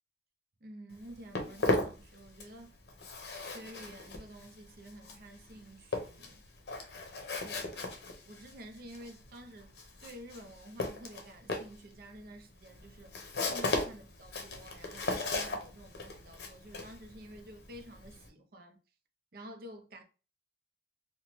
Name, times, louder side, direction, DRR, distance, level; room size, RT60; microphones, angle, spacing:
voice 1, 0.6-2.8 3.4-6.4 7.4-7.9 8.3-13.2 13.5-18.8 19.3-20.0, right 1 dB, 55° right, 0.5 m, -50 dB
Walk footsteps, 0.9-2.6 2.9-18.3, left 2 dB, 70° left, 0.6 m, -37 dB
2.9 x 2.1 x 2.9 m
head